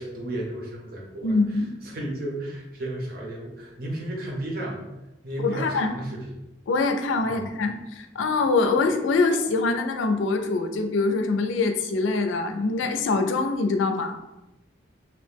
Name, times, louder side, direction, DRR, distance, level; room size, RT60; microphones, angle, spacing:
voice 1, 0.0-1.4 1.8-4.8 5.2-6.2 7.2-7.4, right 1 dB, 50° right, -1 dB, 0.7 m, -33 dB
voice 2, 1.2-1.7 5.4-6.0 6.7-14.2, left 3 dB, 90° left, 6 dB, 0.3 m, -24 dB
2.8 x 2.0 x 3.2 m, 0.97 s
head